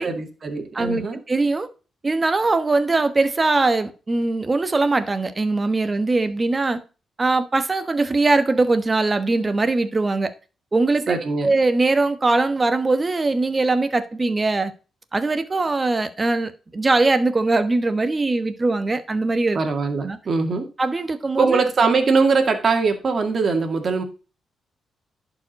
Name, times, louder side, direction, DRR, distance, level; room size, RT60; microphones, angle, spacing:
voice 1, 0.0-1.2 11.1-11.5 19.5-20.7 21.4-24.0, right 4 dB, 45° right, 2.1 m, -21 dB
voice 2, 0.7-1.7 2.0-6.8 7.2-10.3 10.7-11.2 11.4-14.7 15.1-19.6 20.0-20.2 20.8-21.6, right 3 dB, 25° right, 1.1 m, -21 dB
11.0 x 5.0 x 4.1 m
cardioid pair, 110°, 0 cm